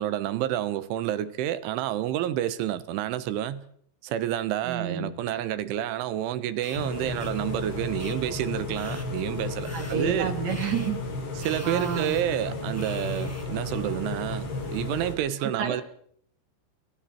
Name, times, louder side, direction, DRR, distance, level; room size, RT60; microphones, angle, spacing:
voice 1, 0.0-3.6 4.0-10.4 11.4-15.8, right 12 dB, 80° right, 3.6 m, -29 dB
voice 2, 4.6-5.1 9.7-11.0 11.6-12.1 15.4-15.8, right 7 dB, 45° right, 3.1 m, -29 dB
sound 1, 6.6-6.8 7.2-7.3 8.0-8.2 8.7-9.1 9.6-10.0 10.5-10.9 11.4-12.2 12.7-13.4, left 1 dB, 5° left, 1.5 m, -44 dB
sound 2, 6.7-15.2, left 2 dB, 55° left, 7.8 m, -33 dB
29.5 x 25.0 x 4.5 m
omnidirectional pair, 5.7 m